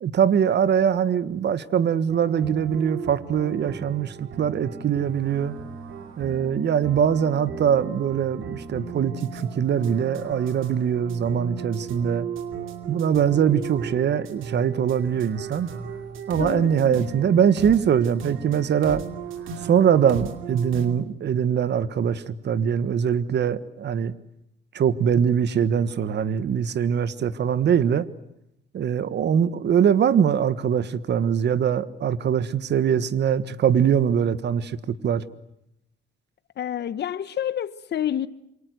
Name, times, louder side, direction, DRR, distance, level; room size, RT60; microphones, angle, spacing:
voice 1, 0.0-5.5 6.2-12.3 12.9-15.7 16.3-19.0 19.7-24.1 24.7-28.1 28.7-35.2, right 8 dB, 60° right, 1.5 m, -22 dB
sound 1, 2.1-20.9, right 6 dB, 85° right, 2.7 m, -36 dB
voice 2, 16.4-17.0 36.6-38.3, left 10 dB, 60° left, 1.2 m, -28 dB
27.0 x 24.5 x 7.9 m
cardioid pair, 90°, 20 cm